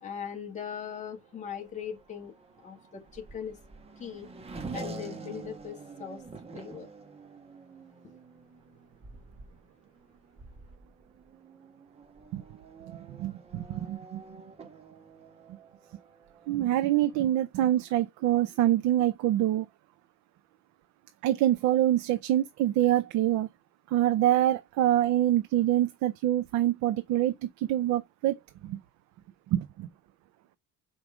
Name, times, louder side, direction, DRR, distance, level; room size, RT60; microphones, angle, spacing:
voice 1, 0.0-2.3 2.6-3.6 4.0-4.3 4.7-6.2 6.5-6.9, left 8 dB, 25° left, 1.8 m, -39 dB
Race car auto racing / Accelerating revving vroom, 1.1-17.3, right 3 dB, 20° right, 1.1 m, -47 dB
voice 2, 13.1-14.2 16.5-19.7 21.2-23.5 23.9-28.8 29.5-29.9, right 13 dB, 70° right, 0.7 m, -25 dB
5.2 x 4.8 x 6.1 m
cardioid pair, 165°, 30 cm